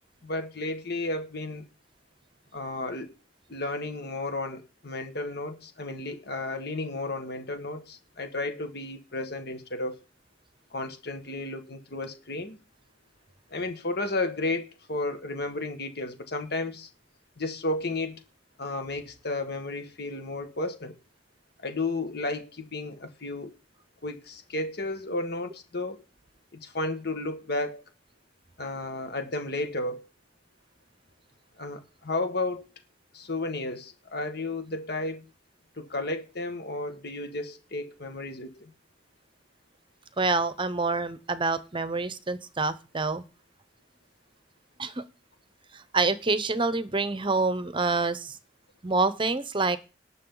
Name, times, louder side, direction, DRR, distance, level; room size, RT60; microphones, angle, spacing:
voice 1, 0.2-1.6 2.5-3.1 3.5-10.0 10.7-12.6 13.5-16.9 17.4-18.2 18.6-20.9 21.6-23.6 24.0-26.0 26.5-27.8 28.6-30.1 31.6-32.7 33.1-35.2 35.8-38.7, left 2 dB, 60° left, 1.9 m, -33 dB
voice 2, 40.2-43.2 44.8-45.1 45.7-48.4 48.8-49.8, right 3 dB, 30° right, 0.8 m, -27 dB
19.0 x 6.6 x 3.9 m
head